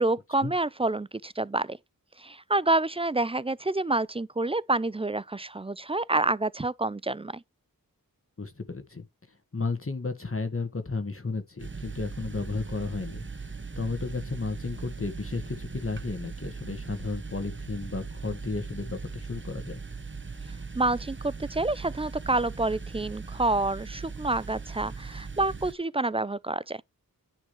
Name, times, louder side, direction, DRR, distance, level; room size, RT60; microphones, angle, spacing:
voice 1, 0.0-1.8 2.2-7.4 20.8-26.8, right 2 dB, 15° right, 0.4 m, -28 dB
voice 2, 8.4-9.1 9.5-19.8, left 3 dB, 40° left, 1.7 m, -33 dB
sound 1, 11.6-25.7, right 4 dB, 35° right, 0.9 m, -39 dB
9.9 x 6.2 x 3.1 m
wide cardioid pair, 70°, 35 cm